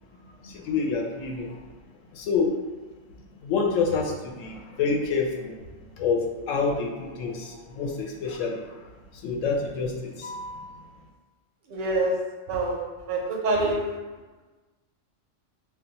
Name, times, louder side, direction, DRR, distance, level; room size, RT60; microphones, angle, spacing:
voice 1, 0.1-1.5 2.1-2.6 3.4-5.5 5.9-8.8 9.1-10.9, left 4 dB, 85° left, 1 dB, 0.9 m, -28 dB
voice 2, 11.7-12.1 12.5-13.9, right 2 dB, 55° right, -1 dB, 0.6 m, -26 dB
2.3 x 2.2 x 3.9 m, 1.3 s
omnidirectional pair, 1.3 m